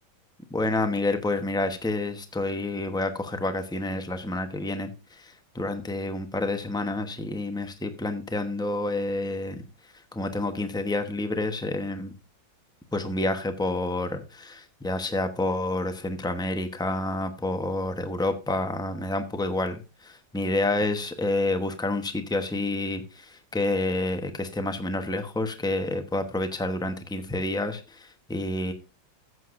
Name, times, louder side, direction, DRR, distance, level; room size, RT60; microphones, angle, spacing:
voice 1, 0.5-12.1 12.9-28.7, left 2 dB, 5° left, 7 dB, 0.3 m, -29 dB
14.5 x 7.9 x 2.5 m, 0.29 s
omnidirectional pair, 2.1 m